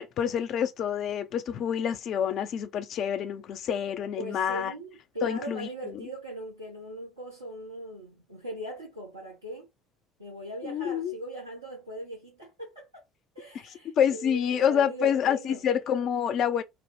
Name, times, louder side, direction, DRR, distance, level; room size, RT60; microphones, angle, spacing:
voice 1, 0.0-4.7 5.2-5.7 10.6-11.1 13.8-16.6, left 8 dB, 50° left, 0.4 m, -27 dB
voice 2, 4.2-9.7 10.2-13.0 13.3-15.6, right 1 dB, 85° right, 0.8 m, -40 dB
2.9 x 2.0 x 3.1 m
figure-of-eight pair, 60°, 0 cm